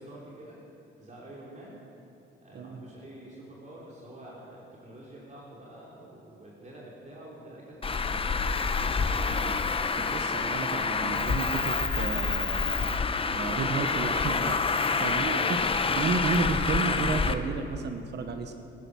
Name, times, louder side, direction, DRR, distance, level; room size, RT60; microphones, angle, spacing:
voice 1, 0.0-1.8 2.4-9.5 9.8-10.0 14.9-15.5, right 1 dB, 35° right, -5 dB, 3.6 m, -48 dB
Traffic noise roadway noise, 7.8-17.3, left 4 dB, 30° left, 0.8 m, -27 dB
voice 2, 10.0-12.7 13.3-14.6 15.0-15.6 15.9-18.5, right 4 dB, 60° right, 6 dB, 1.2 m, -32 dB
19.0 x 10.5 x 6.3 m, 2.7 s
cardioid pair, 90°, 20 cm